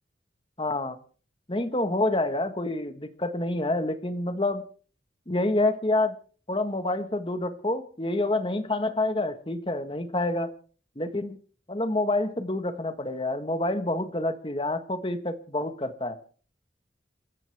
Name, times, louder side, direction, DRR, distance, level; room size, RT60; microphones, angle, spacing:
voice 1, 0.6-1.0 1.5-4.6 5.3-6.2 6.5-10.5 10.9-11.4 11.7-16.2, left 2 dB, 30° left, 9 dB, 1.5 m, -27 dB
27.5 x 14.0 x 3.5 m, 0.41 s
head